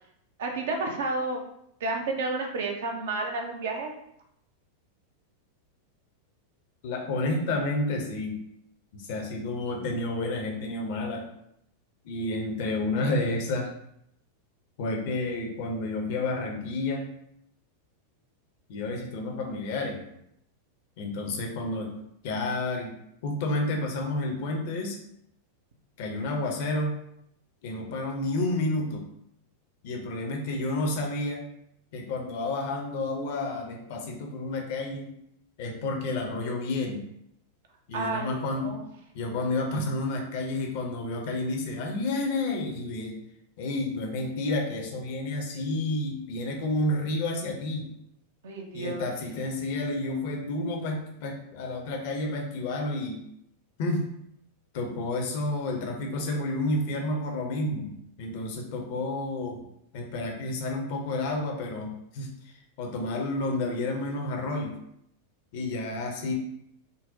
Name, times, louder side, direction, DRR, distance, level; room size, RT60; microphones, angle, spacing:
voice 1, 0.4-1.4 1.8-3.9 37.9-38.8 48.4-49.1, right 3 dB, 60° right, 2 dB, 0.6 m, -31 dB
voice 2, 6.8-8.4 8.9-11.3 12.0-13.7 14.8-17.1 18.7-20.0 21.0-21.9 22.2-22.9 23.2-25.0 26.0-26.9 27.6-29.1 29.8-31.5 31.9-35.1 35.6-37.0 37.9-38.8 39.1-43.2 43.6-47.9 48.7-53.2 53.8-54.1 54.7-59.6 59.9-64.8 65.5-66.3, left 2 dB, 50° left, 2 dB, 0.6 m, -30 dB
3.8 x 2.1 x 2.6 m, 0.74 s
figure-of-eight pair, 90°, 0 cm